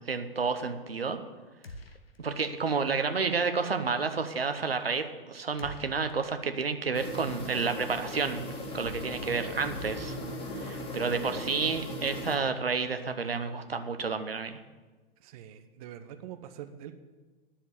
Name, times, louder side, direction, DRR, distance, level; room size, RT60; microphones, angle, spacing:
voice 1, 0.1-1.2 2.2-8.4 8.7-10.2 10.6-14.6, right 5 dB, 75° right, 8 dB, 1.0 m, -30 dB
sound 1, 1.6-2.5 2.8-2.9 5.6-6.9, left 1 dB, 80° left, 1.1 m, -47 dB
sound 2, 6.9-12.4, left 1 dB, 20° left, 1.9 m, -38 dB
voice 2, 9.3-9.7 15.2-16.9, right 10 dB, 40° right, 9 dB, 0.8 m, -45 dB
10.0 x 7.1 x 8.7 m, 1.3 s
figure-of-eight pair, 105°, 29 cm